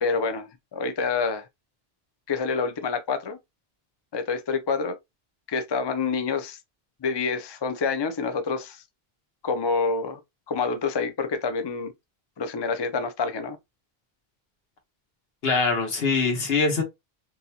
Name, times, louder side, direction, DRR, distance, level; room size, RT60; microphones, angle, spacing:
voice 1, 0.0-1.5 2.3-3.4 4.1-5.0 5.5-6.6 7.0-8.8 9.4-10.2 10.5-11.9 12.4-13.6, left 4 dB, 35° left, 0.4 m, -27 dB
voice 2, 15.4-16.8, left 4 dB, 75° left, 1.3 m, -23 dB
3.8 x 2.6 x 2.8 m
omnidirectional pair, 1.0 m